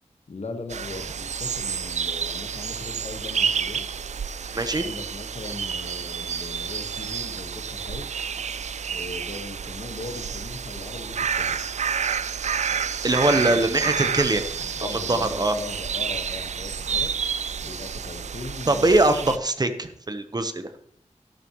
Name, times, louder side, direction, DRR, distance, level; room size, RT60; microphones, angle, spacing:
voice 1, 0.3-3.9 4.7-8.1 8.9-11.6 13.1-17.2 17.6-19.0, left 3 dB, 65° left, 5 dB, 1.4 m, -39 dB
sound 1, 0.7-19.4, right 7 dB, 70° right, 0.4 m, -30 dB
voice 2, 4.5-4.8 13.0-14.4 14.9-15.6 18.7-20.7, right 2 dB, 35° right, 9 dB, 1.0 m, -22 dB
13.0 x 11.5 x 3.1 m, 0.68 s
wide cardioid pair, 100°, 12 cm